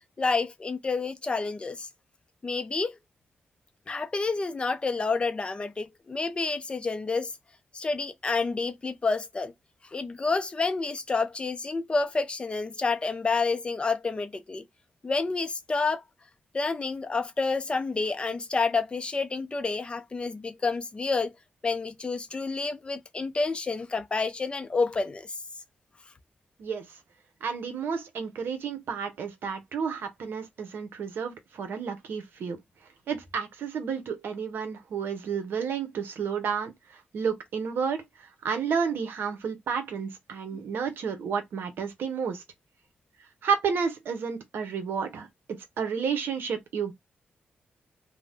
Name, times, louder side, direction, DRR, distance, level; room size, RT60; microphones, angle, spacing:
voice 1, 0.2-1.9 2.4-2.9 3.9-7.3 7.7-9.5 9.9-14.6 15.0-16.0 16.5-21.3 21.6-25.4 40.5-40.6, left 4 dB, 30° left, 0.5 m, -29 dB
voice 2, 27.4-32.6 33.1-42.4 43.4-46.9, right 6 dB, 80° right, 0.7 m, -31 dB
2.6 x 2.0 x 3.3 m
cardioid pair, 110°, 4 cm